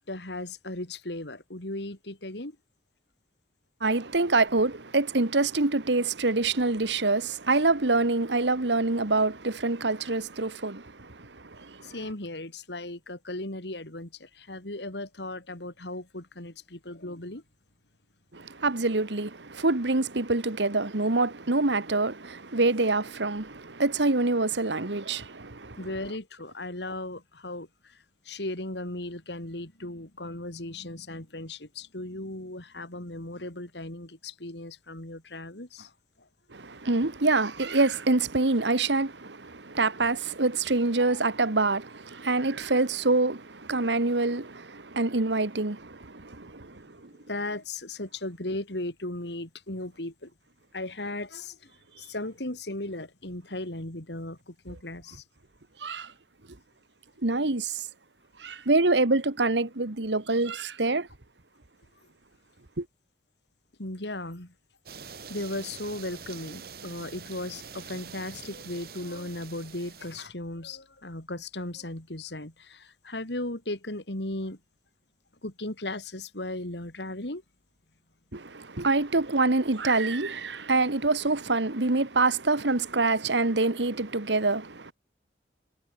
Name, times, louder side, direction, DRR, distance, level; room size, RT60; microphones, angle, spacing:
voice 1, 0.0-2.6 11.8-17.4 25.8-35.9 36.2-36.3 47.1-50.3 50.7-51.7 52.0-55.2 63.8-64.5 65.3-74.6 75.4-77.4, left 2 dB, 80° left, 3.8 m, -36 dB
voice 2, 3.8-12.0 18.3-25.8 36.5-47.1 55.8-56.1 57.2-57.9 58.4-61.1 62.8-62.9 78.3-84.9, right 3 dB, 85° right, 1.7 m, -26 dB
sound 1, 64.9-70.3, right 6 dB, 60° right, 2.3 m, -45 dB
head